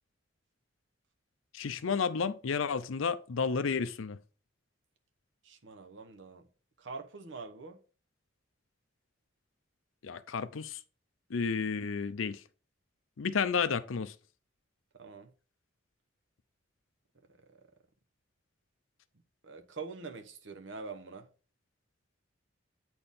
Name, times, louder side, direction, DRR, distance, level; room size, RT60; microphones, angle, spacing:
voice 1, 1.5-4.2 10.0-10.8 11.3-12.4 13.2-14.1, left 5 dB, 85° left, 0.5 m, -31 dB
voice 2, 5.4-6.5 6.8-7.8 15.0-15.3 17.5-17.6 19.4-21.3, right 4 dB, 70° right, 0.9 m, -44 dB
8.7 x 4.3 x 3.5 m
head